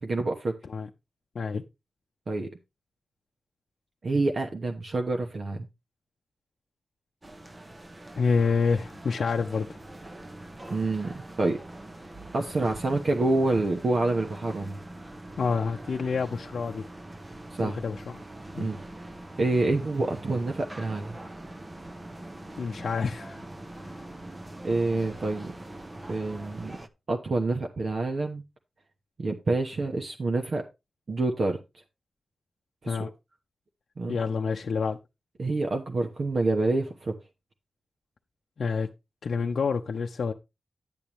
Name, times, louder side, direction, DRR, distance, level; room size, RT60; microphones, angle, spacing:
voice 1, 0.0-0.6 2.3-2.5 4.0-5.7 10.7-11.6 12.3-14.8 17.5-17.8 18.6-18.8 19.4-21.1 24.6-25.5 26.1-26.8 27.1-28.4 29.2-30.6 31.1-31.6 32.8-33.1 34.0-34.2 35.4-37.1, right 2 dB, 50° right, 1.0 m, -27 dB
sound 1, 7.2-26.9, right 1 dB, 20° right, 0.7 m, -43 dB
voice 2, 8.2-9.7 15.4-16.9 17.6-18.2 18.6-18.7 22.6-23.4 32.9-33.1 34.1-35.0 38.6-38.9 39.2-40.3, left 5 dB, 65° left, 0.7 m, -28 dB
10.5 x 8.6 x 3.0 m
wide cardioid pair, 160°, 0 cm